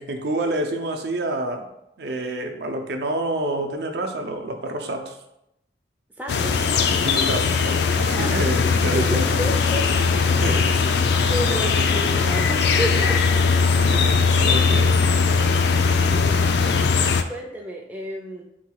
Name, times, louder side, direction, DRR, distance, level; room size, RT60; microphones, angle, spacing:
voice 1, 0.0-1.7 2.0-5.2 7.0-9.2 10.4-10.7 13.9-15.0, right 2 dB, 65° right, 4 dB, 0.5 m, -28 dB
voice 2, 6.2-6.6 8.1-10.7 11.3-13.4 15.4-15.8 16.1-16.5 17.1-18.4, equal, 10° right, -1 dB, 0.4 m, -32 dB
sound 1, 6.3-17.2, left 5 dB, 65° left, 0.3 m, -20 dB
4.0 x 2.3 x 4.5 m, 0.83 s
head